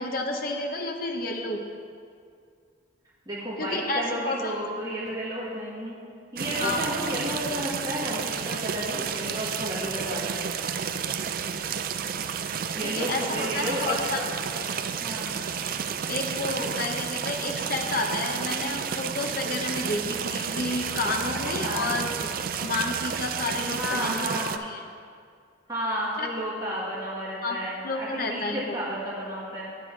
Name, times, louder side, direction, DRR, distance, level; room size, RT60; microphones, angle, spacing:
voice 1, 0.0-1.6 3.6-4.5 6.6-6.8 12.8-14.2 16.1-22.3 22.6-24.8 26.2-26.3 27.4-27.6 27.8-28.8, left 2 dB, 45° left, 2 dB, 0.9 m, -30 dB
voice 2, 3.2-6.0 6.3-10.4 12.7-14.2 15.0-15.3 21.6-21.9 23.8-24.6 25.7-29.9, equal, 20° right, -8 dB, 1.6 m, -32 dB
sound 1, 6.4-24.6, right 7 dB, 45° right, 0.4 m, -31 dB
9.1 x 8.5 x 4.6 m, 2.2 s
head